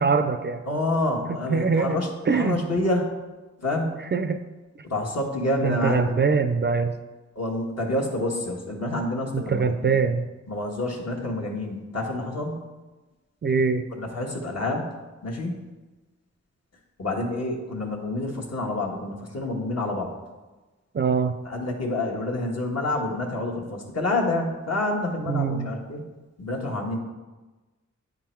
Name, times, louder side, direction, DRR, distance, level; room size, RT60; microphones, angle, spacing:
voice 1, 0.0-0.6 1.3-2.0 2.3-2.6 4.1-4.4 5.6-6.9 9.3-10.3 13.4-13.8 20.9-21.4 25.3-25.7, right 5 dB, 40° right, 10 dB, 0.4 m, -23 dB
voice 2, 0.7-3.0 3.6-3.9 4.9-6.0 7.4-9.9 10.5-12.6 14.0-14.8 15.2-15.6 17.0-20.1 21.4-26.0 26.4-27.0, left 2 dB, 60° left, -1 dB, 1.3 m, -28 dB
9.2 x 3.7 x 4.4 m, 1.2 s
wide cardioid pair, 75°, 30 cm